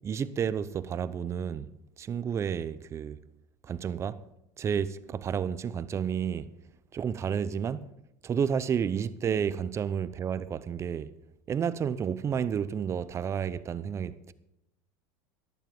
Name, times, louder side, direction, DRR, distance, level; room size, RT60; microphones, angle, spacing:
voice 1, 0.0-1.7 2.0-3.2 3.6-4.2 4.6-6.4 6.9-7.9 8.2-11.1 11.5-14.3, right 7 dB, 30° right, 0.7 m, -31 dB
15.0 x 12.0 x 5.4 m
supercardioid pair, 120°, 10 cm